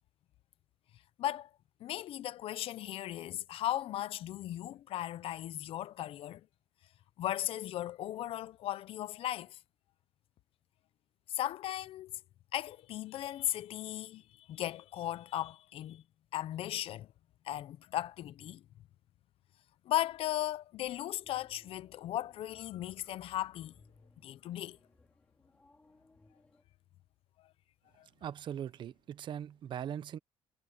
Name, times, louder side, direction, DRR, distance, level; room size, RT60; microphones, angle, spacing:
voice 1, 1.2-1.5 1.8-6.5 7.2-9.6 11.3-12.2 12.5-16.0 16.3-17.1 17.4-18.6 19.8-23.7 24.2-24.8 27.4-27.5 28.0-28.1, left 13 dB, 65° left, 0.7 m, -37 dB
sound 1, 21.1-26.6, left 2 dB, 15° left, 4.2 m, -65 dB
voice 2, 28.2-30.2, right 9 dB, 50° right, 0.9 m, -40 dB
cardioid pair, 160°, 10 cm